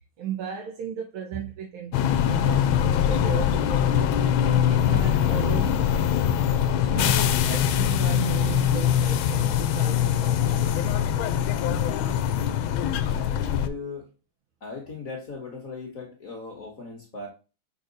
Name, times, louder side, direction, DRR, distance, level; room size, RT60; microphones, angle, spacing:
voice 1, 0.2-2.0 2.2-5.8 6.6-10.7, right 8 dB, 85° right, 1.9 m, -35 dB
sound 1, 1.9-13.7, left 9 dB, 80° left, 1.4 m, -23 dB
voice 2, 13.1-14.1 14.6-17.3, left 4 dB, 45° left, 1.7 m, -38 dB
5.5 x 4.4 x 4.0 m
omnidirectional pair, 2.2 m